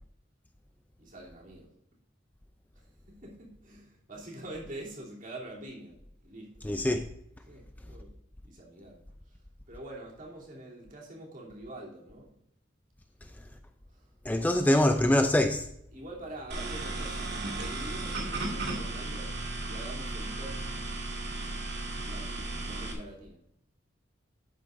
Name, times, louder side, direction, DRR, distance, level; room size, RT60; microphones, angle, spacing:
voice 1, 1.0-1.7 2.7-6.0 6.2-6.6 7.5-8.1 8.4-9.0 9.7-12.3 13.9-14.1 14.7-14.8 15.9-19.3 19.6-20.7 22.1-23.4, right 1 dB, 45° right, 3.0 m, -45 dB
voice 2, 6.6-7.0 14.2-15.7, left 1 dB, 10° left, 0.4 m, -24 dB
sound 1, 16.5-22.9, right 2 dB, 60° right, 2.1 m, -35 dB
11.5 x 9.2 x 2.6 m
head